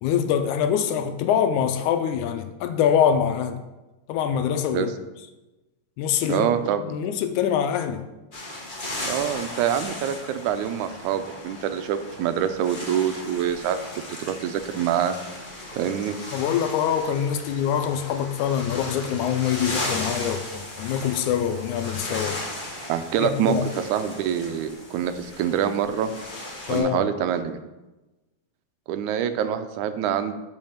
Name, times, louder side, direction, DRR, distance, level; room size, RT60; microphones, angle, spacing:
voice 1, 0.0-3.6 4.1-4.9 6.0-6.5 6.8-8.0 16.3-22.4 23.2-23.6 26.7-27.0, left 8 dB, 80° left, 8 dB, 2.0 m, -24 dB
voice 2, 6.3-7.0 9.0-13.8 14.3-15.2 15.7-16.2 22.9-26.1 26.7-27.6 28.9-30.3, right 9 dB, 80° right, 10 dB, 2.0 m, -25 dB
sound 1, 8.3-26.8, left 1 dB, 30° left, 0.9 m, -36 dB
7.6 x 5.1 x 5.7 m, 1.1 s
omnidirectional pair, 3.5 m